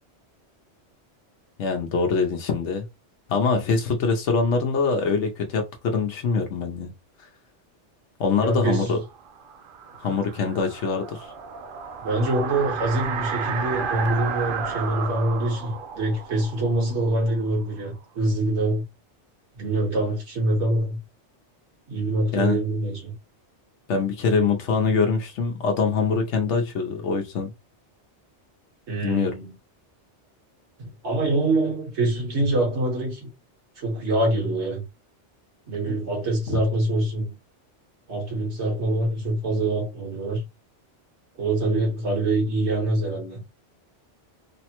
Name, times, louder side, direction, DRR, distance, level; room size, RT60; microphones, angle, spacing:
voice 1, 1.6-2.9 3.3-6.9 8.2-9.0 10.0-11.3 22.3-22.6 23.9-27.5 29.0-29.3 36.5-36.6, left 4 dB, 80° left, 0.9 m, -24 dB
voice 2, 8.4-9.0 10.1-10.2 12.0-18.8 19.6-21.0 21.9-23.1 28.9-29.5 31.0-33.3 33.8-34.8 35.7-37.3 38.1-40.4 41.4-43.4, right 2 dB, 75° right, 1.6 m, -25 dB
sound 1, 9.2-17.9, right 6 dB, 60° right, 0.7 m, -32 dB
3.3 x 2.1 x 2.8 m
omnidirectional pair, 1.2 m